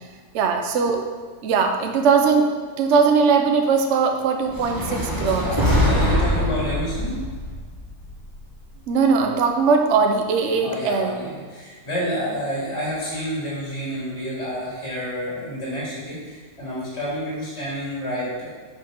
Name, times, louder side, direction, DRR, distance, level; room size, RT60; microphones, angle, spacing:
voice 1, 0.3-1.0 1.4-2.5 2.8-5.5 8.9-11.2, right 5 dB, 55° right, 4 dB, 1.0 m, -20 dB
sound 1, 4.5-8.7, left 1 dB, 15° right, 1.5 m, -23 dB
voice 2, 5.4-7.2 10.6-18.5, equal, 45° left, -7 dB, 3.2 m, -29 dB
6.6 x 6.0 x 5.3 m, 1.5 s
omnidirectional pair, 1.6 m